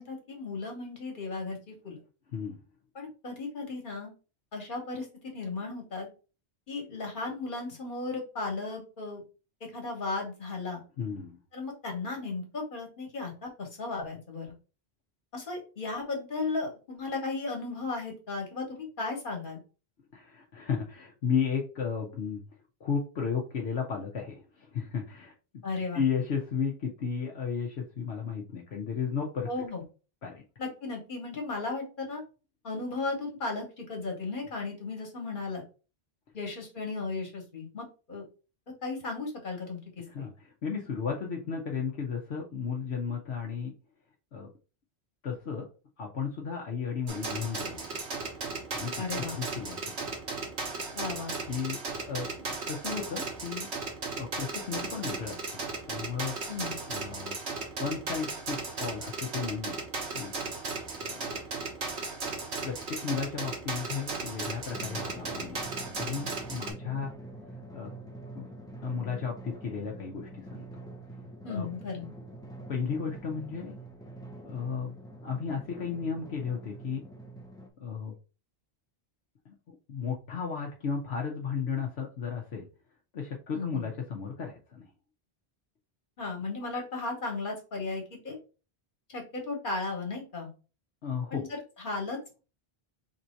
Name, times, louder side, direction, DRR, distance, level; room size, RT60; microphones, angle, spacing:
voice 1, 0.0-2.0 2.9-4.1 4.5-6.1 6.7-9.2 9.6-10.8 11.5-14.5 15.3-19.6 25.6-26.0 29.5-29.8 30.6-32.2 32.6-35.6 36.3-38.2 38.8-40.3 49.0-49.3 50.9-51.3 56.5-56.8 71.4-72.1 83.5-83.9 86.2-88.4 89.1-90.5 91.3-91.5 91.8-92.4, left 3 dB, 50° left, 1 dB, 1.5 m, -35 dB
voice 2, 2.3-2.6 11.0-11.4 20.1-22.4 22.8-25.3 25.9-29.5 30.2-30.4 40.1-43.7 44.3-44.5 45.2-45.6 46.0-48.0 48.7-49.0 49.3-50.1 51.5-51.8 52.1-53.7 54.2-56.3 56.9-57.4 57.8-59.8 60.1-60.3 61.0-61.4 62.6-67.1 67.7-67.9 68.3-68.5 68.8-70.8 71.4-71.6 72.7-73.8 74.4-74.9 75.2-77.0 77.8-78.1 79.5-79.6 79.9-82.7 83.1-84.8 91.0-91.4, left 6 dB, 80° left, 0 dB, 1.1 m, -34 dB
sound 1, 47.1-66.7, right 3 dB, 80° right, 1.4 m, -36 dB
Drum, 64.7-77.7, right 2 dB, 5° left, 0.5 m, -45 dB
3.5 x 2.7 x 4.4 m, 0.33 s
omnidirectional pair, 1.1 m